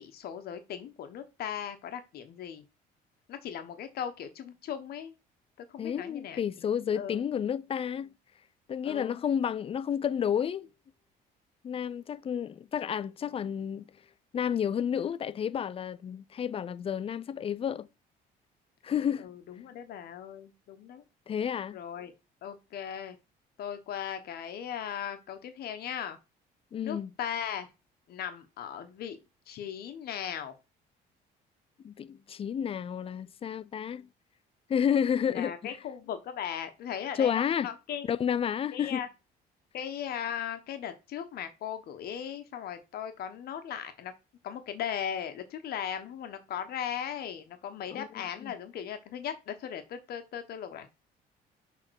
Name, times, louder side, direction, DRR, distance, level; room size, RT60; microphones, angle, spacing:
voice 1, 0.0-2.6 3.3-5.1 5.7-6.4 6.9-7.2 8.8-9.2 19.2-21.0 21.7-22.1 22.4-23.2 23.6-26.2 26.8-27.7 28.1-29.2 29.5-30.5 35.3-38.1 38.7-39.1 39.7-44.1 44.4-50.9, left 9 dB, 65° left, 1.2 m, -38 dB
voice 2, 5.8-8.1 8.7-10.7 11.6-13.8 14.3-17.9 18.8-19.3 21.3-21.8 26.7-27.1 31.8-34.1 34.7-35.8 37.2-37.7 38.0-39.0 47.9-48.1 48.4-48.5, left 8 dB, 35° left, 0.4 m, -31 dB
6.4 x 3.8 x 6.3 m
cardioid pair, 110°, 17 cm